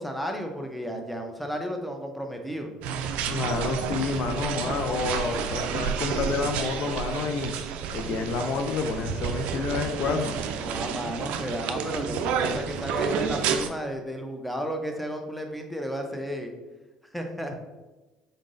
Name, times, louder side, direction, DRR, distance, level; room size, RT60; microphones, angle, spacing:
voice 1, 0.0-2.7 10.6-16.5 17.1-17.6, equal, ahead, 3 dB, 0.6 m, -33 dB
sound 1, 2.8-13.7, right 7 dB, 65° right, 0.3 m, -30 dB
voice 2, 3.3-7.5 7.9-10.4, left 4 dB, 55° left, 5 dB, 0.4 m, -29 dB
3.9 x 3.6 x 2.5 m, 1.1 s
hypercardioid pair, 65°, 3 cm